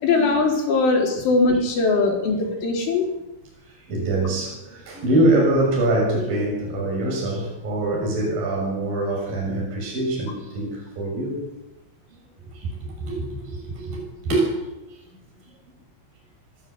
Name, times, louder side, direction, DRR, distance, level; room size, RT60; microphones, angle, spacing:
voice 1, 0.0-3.0, left 3 dB, 75° left, 1 dB, 7.0 m, -20 dB
voice 2, 3.7-11.4 12.1-12.2 12.5-12.7 13.0-14.5 14.9-15.0, right 1 dB, 45° right, -2 dB, 8.3 m, -24 dB
24.5 x 16.5 x 8.3 m, 0.97 s
omnidirectional pair, 5.6 m